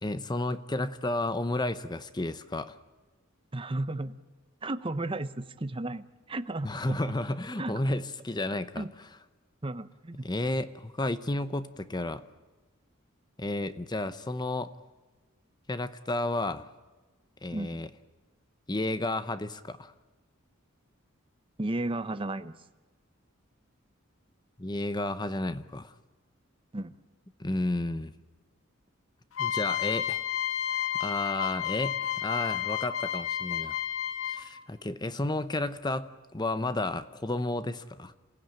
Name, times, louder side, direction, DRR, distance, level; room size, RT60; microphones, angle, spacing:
voice 1, 0.0-2.8 6.6-9.1 10.2-12.2 13.4-14.7 15.7-16.7 17.4-17.9 18.7-19.9 24.6-25.9 27.4-28.1 29.4-30.2 30.7-33.8 34.3-38.1, left 2 dB, 20° left, 13 dB, 0.8 m, -32 dB
voice 2, 3.5-4.2 4.6-7.1 7.6-7.8 8.8-8.9 9.6-10.3 17.5-17.8 21.6-22.5 26.7-27.0, right 2 dB, 25° right, 11 dB, 0.8 m, -34 dB
sound 1, 29.3-34.6, left 10 dB, 80° left, 1.4 m, -31 dB
28.0 x 16.0 x 9.2 m, 1.2 s
head